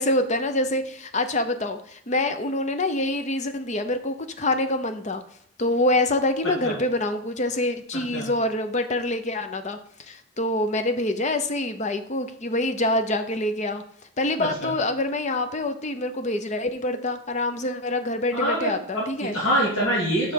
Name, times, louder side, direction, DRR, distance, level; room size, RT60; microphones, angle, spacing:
voice 1, 0.0-5.2 5.6-9.8 10.1-13.8 14.2-19.4, left 1 dB, 35° left, 8 dB, 0.7 m, -26 dB
voice 2, 14.4-14.7 18.4-20.3, equal, 75° left, -6 dB, 2.4 m, -25 dB
5.7 x 4.7 x 6.4 m, 0.64 s
head